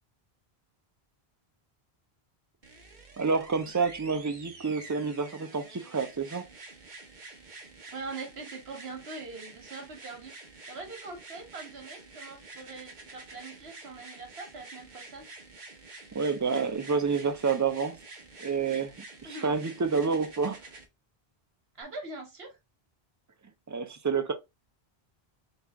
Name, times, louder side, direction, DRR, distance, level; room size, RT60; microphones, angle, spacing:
sound 1, 2.6-20.8 21.8-21.9, right 3 dB, 50° right, 1.0 m, -48 dB
voice 1, 3.2-6.5 16.1-18.0 18.4-18.9 19.4-20.6 23.7-24.3, right 5 dB, 30° right, 0.3 m, -28 dB
voice 2, 7.9-15.2 19.2-19.5 21.7-22.6, right 3 dB, 75° right, 1.5 m, -42 dB
4.0 x 2.9 x 3.4 m
omnidirectional pair, 1.1 m